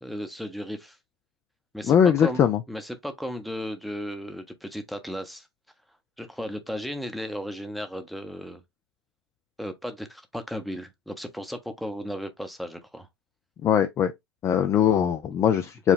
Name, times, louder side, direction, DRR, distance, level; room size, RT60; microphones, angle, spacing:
voice 1, 0.0-1.0 1.7-5.5 6.2-8.6 9.6-13.1, equal, ahead, 0.7 m, -35 dB
voice 2, 1.9-2.6 13.6-14.1 14.4-15.9, left 8 dB, 20° left, 0.4 m, -21 dB
4.8 x 2.2 x 3.6 m
figure-of-eight pair, 100°, 13 cm